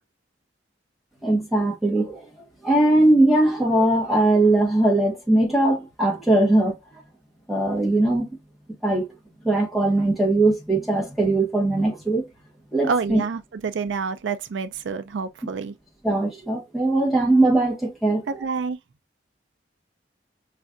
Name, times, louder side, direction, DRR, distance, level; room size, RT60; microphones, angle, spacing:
voice 1, 1.2-2.3 2.6-7.0 7.5-8.4 8.8-9.1 9.4-12.3 12.7-13.2 16.0-18.2, right 2 dB, ahead, 1.2 m, -20 dB
voice 2, 12.8-15.7 18.3-18.8, right 5 dB, 85° right, 0.4 m, -28 dB
5.1 x 2.5 x 2.4 m
head